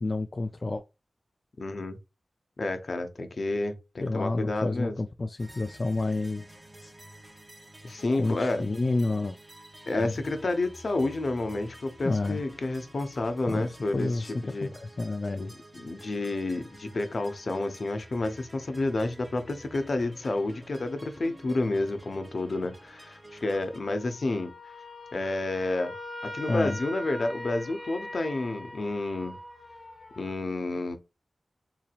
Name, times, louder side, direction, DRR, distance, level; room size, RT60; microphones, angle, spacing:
voice 1, 0.0-0.8 4.0-6.5 6.8-6.9 8.2-9.4 10.0-10.2 12.0-12.4 13.5-15.5 26.5-26.8, left 2 dB, 45° left, 0.3 m, -29 dB
voice 2, 1.6-2.0 2.6-4.9 7.8-8.6 9.9-14.1 14.4-14.7 15.4-24.5 25.1-25.9 26.3-29.4 30.2-31.0, left 2 dB, 65° left, 0.7 m, -30 dB
sound 1, 5.4-23.8, right 1 dB, 15° right, 0.9 m, -50 dB
sound 2, 16.5-18.0 18.4-18.6 18.8-19.2 22.4-30.3, left 1 dB, 20° left, 0.9 m, -43 dB
3.9 x 2.9 x 2.4 m
wide cardioid pair, 75°, 0 cm